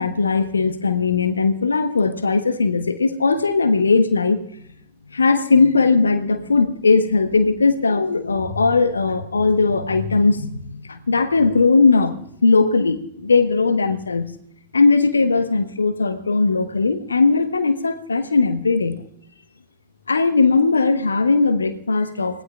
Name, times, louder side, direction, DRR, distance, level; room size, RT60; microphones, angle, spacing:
voice 1, 0.0-4.4 5.1-12.1 12.4-14.3 14.7-19.0 20.1-22.4, left 4 dB, 75° left, 10 dB, 1.2 m, -18 dB
25.5 x 19.0 x 2.4 m, 0.73 s
figure-of-eight pair, 90°, 0 cm